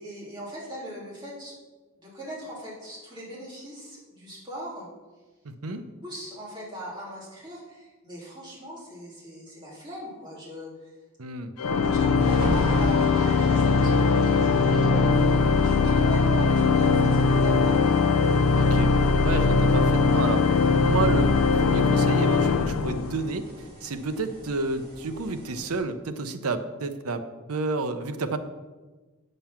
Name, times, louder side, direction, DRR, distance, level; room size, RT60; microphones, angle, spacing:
voice 1, 0.0-1.5 2.0-4.9 5.6-5.7 6.0-10.9 11.8-15.2 15.6-18.0, equal, 20° right, -7 dB, 3.2 m, -39 dB
voice 2, 5.4-5.8 11.2-11.5 18.5-18.9 19.2-20.5 20.8-28.4, right 3 dB, 80° right, 9 dB, 0.7 m, -30 dB
Organ, 11.6-23.4, left 4 dB, 85° left, 0.5 m, -21 dB
sound 1, 12.2-25.8, equal, 45° right, 3.1 m, -41 dB
8.6 x 5.4 x 5.9 m, 1.3 s
head